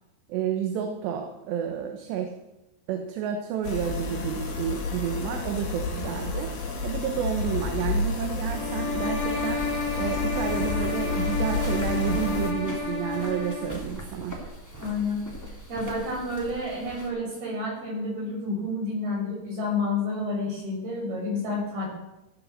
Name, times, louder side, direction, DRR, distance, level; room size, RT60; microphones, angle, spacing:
voice 1, 0.3-2.3 2.9-6.5 6.8-9.7 10.0-14.4, right 9 dB, 85° right, 4 dB, 3.3 m, -30 dB
sound 1, 3.6-12.5, left 3 dB, 70° left, 3.9 m, -30 dB
sound 2, 8.4-13.8, left 4 dB, 40° left, 4.0 m, -31 dB
sound 3, 10.3-17.1, right 1 dB, 5° left, 1.7 m, -41 dB
voice 2, 14.8-15.2 15.7-21.9, left 2 dB, 65° right, -3 dB, 8.0 m, -29 dB
15.5 x 9.7 x 6.6 m, 0.94 s
omnidirectional pair, 4.9 m